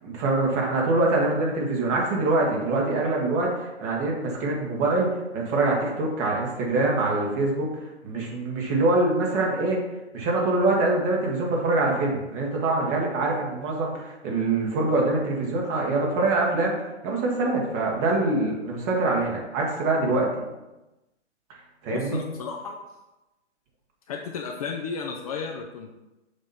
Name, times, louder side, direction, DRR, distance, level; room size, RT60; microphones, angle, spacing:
voice 1, 0.0-9.8 10.1-16.7 17.0-20.3 21.8-22.2, right 2 dB, 30° right, -2 dB, 1.7 m, -24 dB
voice 2, 21.9-22.8 24.1-25.9, left 5 dB, 30° left, 1 dB, 0.5 m, -33 dB
7.1 x 3.1 x 5.5 m, 1.0 s
hypercardioid pair, 135°, 36 cm